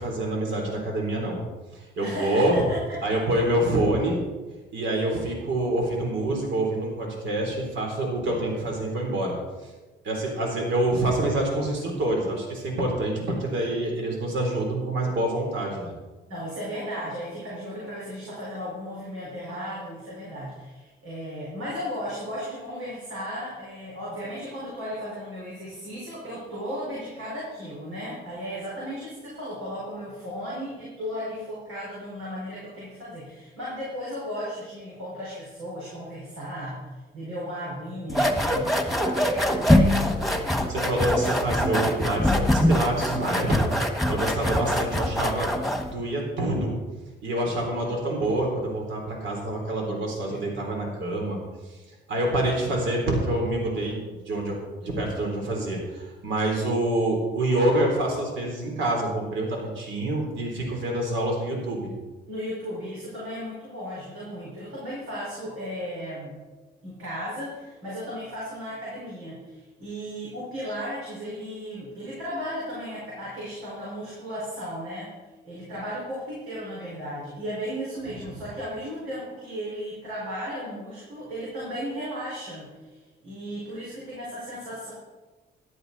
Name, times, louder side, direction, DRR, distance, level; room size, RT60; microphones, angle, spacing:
voice 1, 0.0-1.4 1.7-2.6 3.0-4.2 4.7-9.4 9.6-9.7 10.0-15.9 40.7-43.7 44.1-45.5 45.7-46.7 47.2-51.4 52.1-61.9, right 1 dB, 70° right, -1 dB, 3.5 m, -26 dB
voice 2, 2.0-3.2 16.3-36.8 37.1-40.0 50.3-50.6 62.3-66.3 66.8-75.1 75.4-83.0 83.2-84.9, equal, 90° right, -6 dB, 4.9 m, -35 dB
sound 1, 38.1-45.9, left 1 dB, ahead, 1.6 m, -23 dB
13.5 x 11.5 x 4.1 m, 1.3 s
cardioid pair, 90°, 20 cm